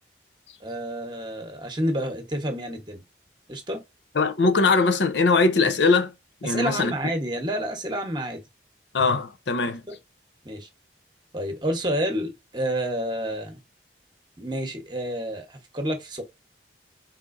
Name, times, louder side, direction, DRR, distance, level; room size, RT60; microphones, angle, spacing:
voice 1, 0.6-3.0 3.5-3.8 6.4-8.4 9.9-10.0 10.4-10.7 11.3-13.6 14.4-16.2, right 1 dB, 25° right, 1.0 m, -29 dB
voice 2, 4.1-6.1 6.4-6.9 8.9-9.8, left 3 dB, 85° left, 0.7 m, -21 dB
4.3 x 3.7 x 2.5 m
head